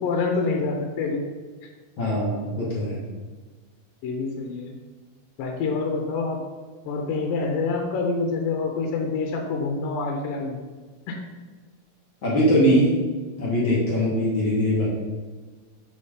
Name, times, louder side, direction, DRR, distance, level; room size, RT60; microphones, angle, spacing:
voice 1, 0.0-1.2 4.0-4.8 5.4-6.4 6.9-10.6 11.1-11.2, left 4 dB, 85° left, 1 dB, 2.5 m, -26 dB
voice 2, 2.0-3.0 12.2-12.9 13.4-14.9, equal, 50° left, -5 dB, 1.7 m, -21 dB
6.9 x 4.2 x 5.1 m, 1.4 s
omnidirectional pair, 3.9 m